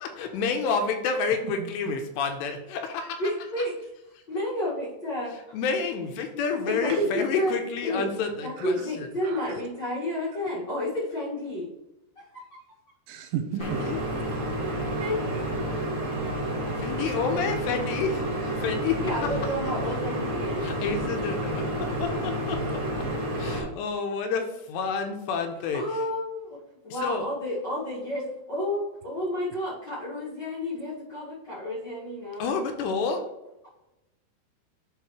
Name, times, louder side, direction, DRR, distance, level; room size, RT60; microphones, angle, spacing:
voice 1, 0.0-3.2 3.6-3.7 5.5-9.1 13.6-14.0 16.8-19.3 20.6-22.8 23.4-26.0 26.9-27.3 32.4-33.2, left 5 dB, 85° left, 5 dB, 2.9 m, -29 dB
voice 2, 3.2-3.7 4.3-5.3 6.6-7.5 7.8-8.1 8.4-11.7 15.0-15.4 19.0-20.6 25.7-32.5, left 1 dB, 45° left, -9 dB, 1.4 m, -31 dB
voice 3, 9.2-9.6 13.1-13.8 15.6-15.8, right 9 dB, 85° right, 7 dB, 3.1 m, -34 dB
sound 1, 13.6-23.6, right 1 dB, 35° right, 1.2 m, -30 dB
11.5 x 4.5 x 3.1 m, 0.93 s
omnidirectional pair, 5.0 m